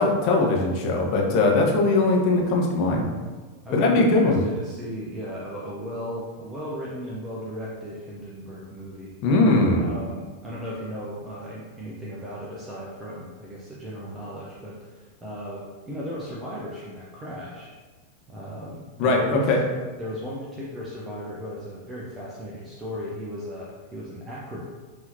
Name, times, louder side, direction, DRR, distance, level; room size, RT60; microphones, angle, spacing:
voice 1, 0.0-3.0 3.7-4.4 9.2-9.9 19.0-19.6, left 2 dB, 40° left, -1 dB, 0.9 m, -20 dB
voice 2, 3.6-9.1 9.8-17.7 18.3-19.5 20.0-24.6, equal, 15° right, -6 dB, 0.7 m, -36 dB
5.8 x 2.9 x 2.7 m, 1.4 s
figure-of-eight pair, 90°, 0 cm